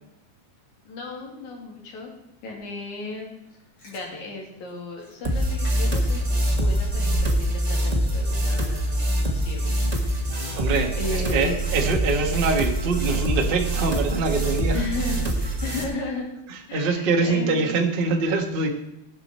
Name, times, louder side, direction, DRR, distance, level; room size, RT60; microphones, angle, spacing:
voice 1, 0.9-2.1 2.4-3.3 3.8-10.5 11.0-11.7 14.7-16.3 16.7-17.8, left 3 dB, 65° left, 0 dB, 3.9 m, -35 dB
Chewing mastication, 3.5-4.0 4.7-4.8 5.0-5.2 5.6-5.7 6.1-7.6 7.9-9.1 9.5-9.6, right 6 dB, 40° left, 5.0 m, -37 dB
sound 1, 5.2-15.8, right 1 dB, 85° right, 0.3 m, -24 dB
voice 2, 10.6-14.9 16.5-18.7, right 3 dB, 45° right, 2 dB, 0.7 m, -24 dB
18.0 x 8.1 x 4.3 m, 0.90 s
omnidirectional pair, 3.6 m